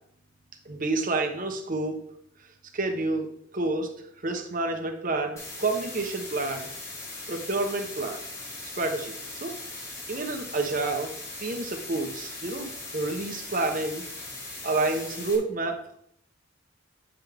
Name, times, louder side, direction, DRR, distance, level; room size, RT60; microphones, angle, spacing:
voice 1, 0.6-2.0 2.7-3.9 4.2-6.7 7.3-8.2 8.6-9.1 9.4-14.0 14.6-16.0, right 2 dB, 40° right, 4 dB, 1.0 m, -29 dB
sound 1, 5.4-15.4, left 2 dB, 15° left, 1.8 m, -39 dB
8.8 x 5.9 x 3.5 m, 0.69 s
head